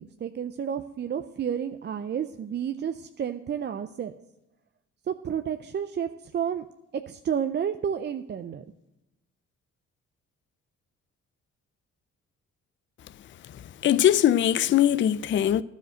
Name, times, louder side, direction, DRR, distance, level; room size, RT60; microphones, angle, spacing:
voice 1, 0.0-4.1 5.1-6.7 7.1-8.6, right 8 dB, 35° right, 0.4 m, -31 dB
voice 2, 13.8-15.6, left 11 dB, 40° left, 0.4 m, -21 dB
11.5 x 5.1 x 7.7 m
cardioid pair, 90°, 30 cm